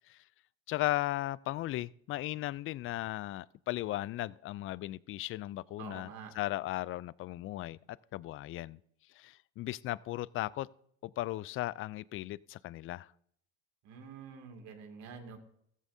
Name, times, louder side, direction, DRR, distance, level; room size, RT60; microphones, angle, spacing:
voice 1, 0.7-6.1 6.4-7.8 8.1-8.8 9.2-10.7 11.0-13.1, left 16 dB, 40° left, 0.4 m, -36 dB
voice 2, 5.8-6.3 13.8-15.4, right 6 dB, 65° right, 2.5 m, -47 dB
15.0 x 14.0 x 2.7 m
supercardioid pair, 90°, 32 cm